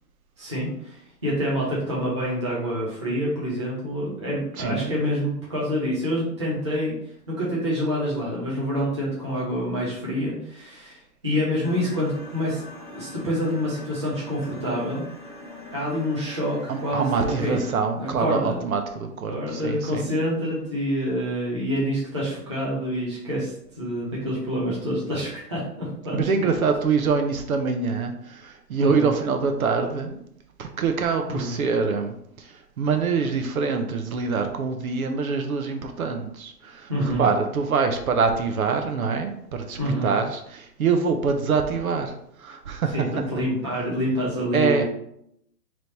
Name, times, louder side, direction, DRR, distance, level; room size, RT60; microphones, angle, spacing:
voice 1, 0.4-6.9 7.3-15.0 15.7-17.6 17.9-18.6 19.3-26.5 28.8-29.1 31.3-31.6 36.9-37.3 39.8-40.2 42.9-44.8, equal, 20° right, -7 dB, 0.5 m, -27 dB
voice 2, 4.6-4.9 16.7-20.1 26.1-30.2 30.6-42.1 42.4-43.1 44.5-44.8, right 5 dB, 60° right, 6 dB, 0.7 m, -25 dB
sound 1, 11.6-17.8, left 2 dB, 35° left, 0.4 m, -42 dB
3.2 x 3.1 x 4.0 m, 0.73 s
hypercardioid pair, 160°, 49 cm